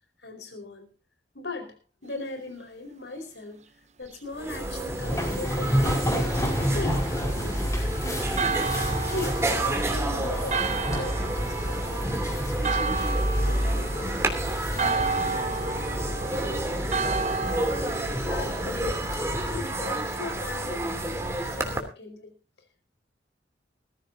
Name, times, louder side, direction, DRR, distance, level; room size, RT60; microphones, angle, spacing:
voice 1, 0.2-0.9 1.3-1.8 2.0-3.6 4.0-5.9 6.7-7.6 9.1-12.1 12.4-14.3 14.7-16.7 17.1-17.7 18.2-19.1 19.5-21.2 21.5-22.3, left 2 dB, 85° left, 6 dB, 4.8 m, -39 dB
sound 1, 4.1-4.2 4.3-21.8, right 1 dB, 15° right, 3.0 m, -30 dB
sound 2, 4.9-19.6, equal, 20° left, 5.2 m, -31 dB
Church bell, 8.4-18.0, right 4 dB, 40° right, 0.9 m, -32 dB
20.5 x 14.5 x 2.8 m, 0.31 s
head